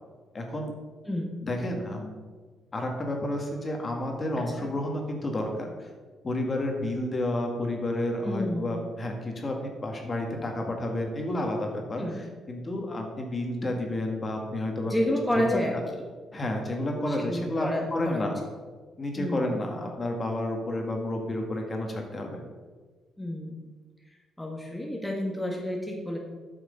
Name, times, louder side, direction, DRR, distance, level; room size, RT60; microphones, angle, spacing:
voice 1, 0.3-0.7 1.4-2.2 2.7-5.9 6.2-12.0 12.5-14.9 15.5-15.6 16.3-18.4 19.0-22.4, left 1 dB, 30° left, 2 dB, 1.7 m, -30 dB
voice 2, 4.4-4.7 8.2-8.7 12.0-12.1 14.9-15.8 17.1-18.3 19.2-19.5 23.2-23.6 24.4-26.2, left 1 dB, 5° left, 0 dB, 1.4 m, -30 dB
8.4 x 6.3 x 5.2 m, 1.4 s
cardioid pair, 90°, 0 cm